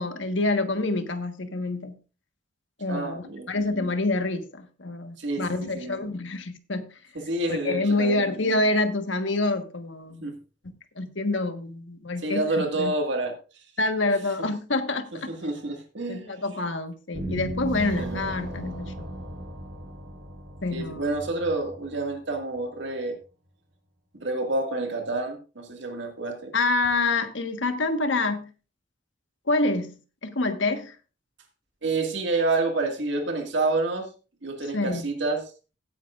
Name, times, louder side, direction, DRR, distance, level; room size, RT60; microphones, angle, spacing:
voice 1, 0.0-2.0 2.8-6.8 7.5-10.2 11.0-12.9 13.8-15.3 16.1-19.1 20.6-21.0 26.5-28.5 29.5-30.9 34.7-35.0, left 2 dB, 75° left, 8 dB, 1.4 m, -27 dB
voice 2, 2.9-3.5 5.2-6.1 7.2-8.2 10.2-10.4 12.2-13.3 15.1-16.3 18.0-18.2 20.7-23.1 24.2-26.5 31.8-34.1 34.4-35.4, right 2 dB, 65° right, 3 dB, 2.0 m, -28 dB
sound 1, 17.1-22.4, right 1 dB, 85° right, 5.1 m, -35 dB
16.5 x 9.4 x 2.5 m, 0.34 s
head